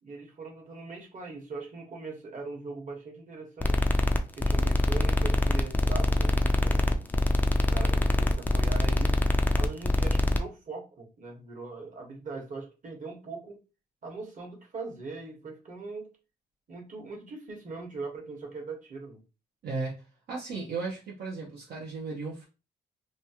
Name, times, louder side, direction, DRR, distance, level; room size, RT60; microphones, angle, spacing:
voice 1, 0.0-3.8 4.4-7.0 7.5-9.2 9.6-13.6 14.0-16.1 16.7-19.2, right 3 dB, 45° right, 0 dB, 1.3 m, -41 dB
sound 1, 3.6-10.4, left 1 dB, 10° left, 0.4 m, -24 dB
voice 2, 19.6-20.0 20.3-22.4, right 4 dB, 65° right, -3 dB, 0.8 m, -35 dB
3.0 x 2.4 x 2.8 m, 0.30 s
cardioid pair, 95°, 18 cm